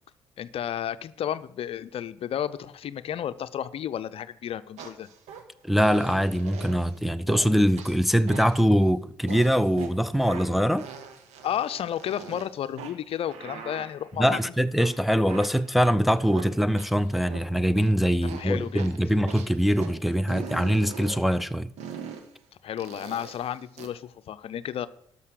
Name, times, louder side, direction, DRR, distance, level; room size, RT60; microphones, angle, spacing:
voice 1, 0.4-5.1 11.4-14.5 18.4-18.8 22.6-24.9, left 10 dB, 55° left, 0.5 m, -32 dB
sound 1, 4.8-5.4 5.8-6.9 7.3-7.5 7.8-8.7 9.3-9.9 10.3-12.5 12.8-14.4 14.8-17.4 17.8-17.9 18.3-19.9 20.3-21.2 21.8-22.3 22.8-23.9, right 7 dB, 70° right, 1.3 m, -41 dB
voice 2, 5.6-10.9 14.2-21.7, equal, ahead, 0.5 m, -23 dB
12.5 x 5.4 x 6.5 m
hypercardioid pair, 50°, 12 cm